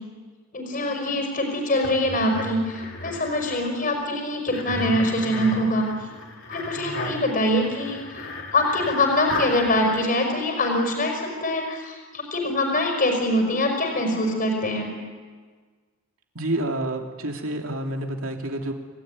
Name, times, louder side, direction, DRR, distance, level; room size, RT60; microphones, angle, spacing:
voice 1, 0.5-5.9 6.5-8.2 8.5-14.9, left 1 dB, 40° left, 3 dB, 5.0 m, -24 dB
sound 1, 1.8-3.6 4.5-10.0, left 2 dB, 60° left, 4.3 m, -34 dB
voice 2, 16.3-18.7, right 1 dB, 70° right, 3 dB, 2.9 m, -28 dB
28.5 x 17.5 x 9.7 m, 1.5 s
head